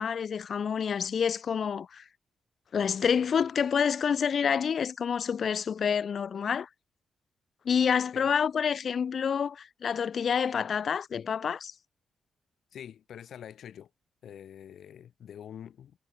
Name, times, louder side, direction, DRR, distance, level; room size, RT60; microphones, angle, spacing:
voice 1, 0.0-2.0 2.7-6.7 7.6-11.7, left 7 dB, 50° left, 0.7 m, -28 dB
voice 2, 12.7-13.9 14.2-16.0, left 9 dB, 70° left, 5.1 m, -45 dB
wide cardioid pair, 135°, 0 cm